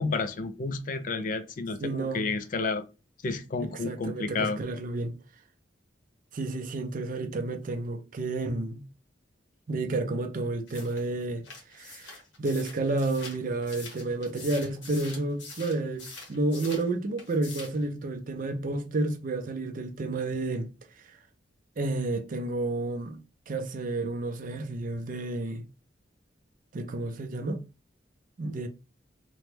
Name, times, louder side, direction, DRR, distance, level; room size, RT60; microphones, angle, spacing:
voice 1, 0.0-2.8 3.2-4.6, left 4 dB, 45° left, 0.4 m, -31 dB
voice 2, 1.8-2.3 3.8-5.1 6.3-8.8 9.7-11.5 11.7-20.7 21.1-21.2 21.8-23.2 23.5-25.6 26.7-27.6 28.4-28.7, right 2 dB, 50° right, 0.5 m, -31 dB
sound 1, 10.7-16.9 17.2-17.8, left 3 dB, 75° left, 1.2 m, -45 dB
3.0 x 2.2 x 3.2 m
head